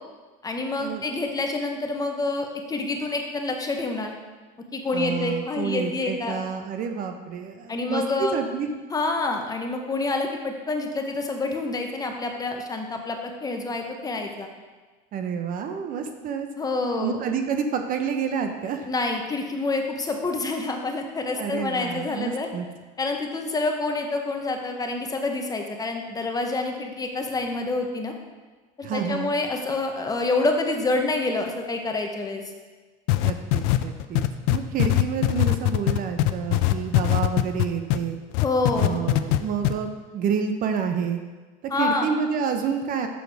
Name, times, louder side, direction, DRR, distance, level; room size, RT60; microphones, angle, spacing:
voice 1, 0.4-4.1 4.7-6.4 7.7-8.4 8.9-14.5 16.6-17.2 18.9-22.5 23.0-28.1 28.8-32.4 38.4-39.0 41.7-42.1, left 3 dB, 20° left, 3 dB, 0.8 m, -27 dB
voice 2, 4.9-8.7 15.1-16.5 17.0-18.9 21.4-22.7 28.8-29.3 33.2-38.2 38.7-41.2 41.6-43.1, right 6 dB, 45° right, 6 dB, 0.7 m, -29 dB
sound 1, 33.1-38.0 38.3-39.4 39.6-39.7, left 17 dB, 75° left, 0.4 m, -20 dB
6.6 x 6.2 x 3.4 m, 1.3 s
supercardioid pair, 110°, 19 cm